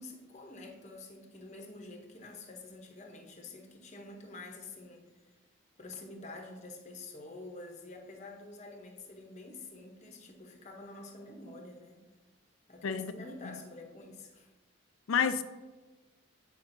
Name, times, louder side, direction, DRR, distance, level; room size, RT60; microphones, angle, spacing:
voice 1, 0.0-5.1 5.8-12.0 12.7-14.5, left 2 dB, 35° left, 2 dB, 0.8 m, -48 dB
voice 2, 12.8-13.6 15.1-15.4, left 7 dB, 70° left, 11 dB, 0.4 m, -31 dB
8.8 x 4.9 x 2.6 m, 1.2 s
head